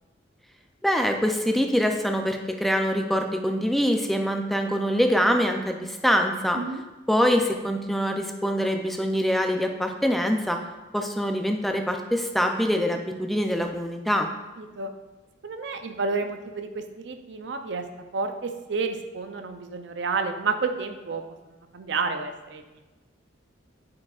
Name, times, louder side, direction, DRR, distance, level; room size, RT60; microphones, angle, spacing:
voice 1, 0.8-6.6 7.1-10.6 10.9-14.3, equal, ahead, 4 dB, 0.4 m, -24 dB
voice 2, 14.6-14.9 15.4-17.9 18.1-21.2 21.7-22.6, right 4 dB, 65° right, 7 dB, 0.5 m, -30 dB
8.5 x 4.8 x 2.4 m, 1.1 s
head